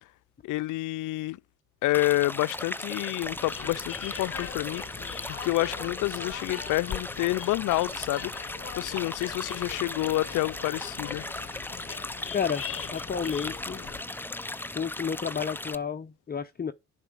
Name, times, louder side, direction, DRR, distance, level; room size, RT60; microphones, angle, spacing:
voice 1, 0.4-1.4 1.8-8.3 8.8-11.2, left 18 dB, 80° left, 0.6 m, -29 dB
sound 1, 1.9-15.7, left 2 dB, 5° left, 0.7 m, -37 dB
sound 2, 3.2-14.0, left 8 dB, 50° left, 1.3 m, -41 dB
voice 2, 12.3-12.6 12.9-13.8 14.7-16.7, left 7 dB, 30° left, 1.0 m, -31 dB
11.0 x 4.8 x 8.0 m
cardioid pair, 90°, 30 cm